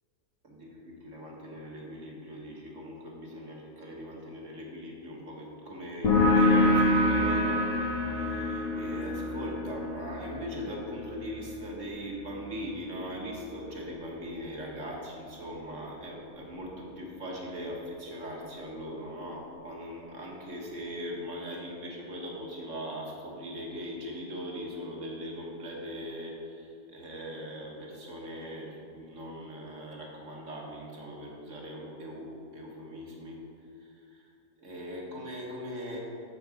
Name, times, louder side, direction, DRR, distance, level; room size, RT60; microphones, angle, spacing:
voice 1, 0.4-33.4 33.8-34.3 34.6-36.0, equal, 60° right, -2 dB, 1.9 m, -40 dB
sound 1, 6.0-13.3, left 1 dB, 75° left, 1.8 m, -27 dB
8.8 x 7.0 x 5.0 m, 2.5 s
omnidirectional pair, 1.4 m